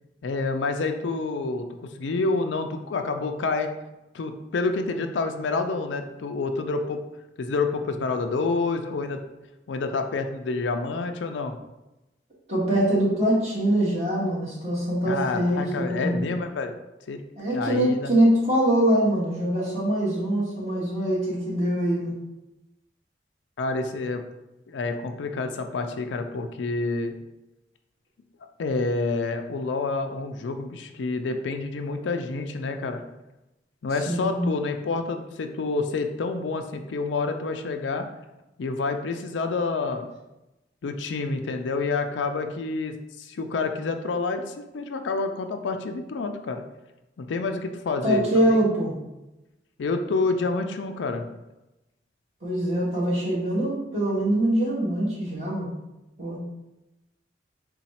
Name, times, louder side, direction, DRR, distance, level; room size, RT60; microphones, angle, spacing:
voice 1, 0.2-3.7 4.1-7.0 7.4-9.2 9.7-11.6 15.1-16.7 17.1-17.2 17.5-18.1 23.6-24.2 24.7-27.1 28.6-33.0 33.8-38.1 38.6-40.1 40.8-46.6 47.2-48.2 48.5-48.6 49.8-51.2, left 3 dB, 85° left, 7 dB, 0.4 m, -28 dB
voice 2, 12.5-16.1 17.4-22.1 34.1-34.4 48.0-48.9 52.4-55.7 56.2-56.4, right 1 dB, 35° right, -7 dB, 1.5 m, -23 dB
4.0 x 2.3 x 4.2 m, 0.97 s
head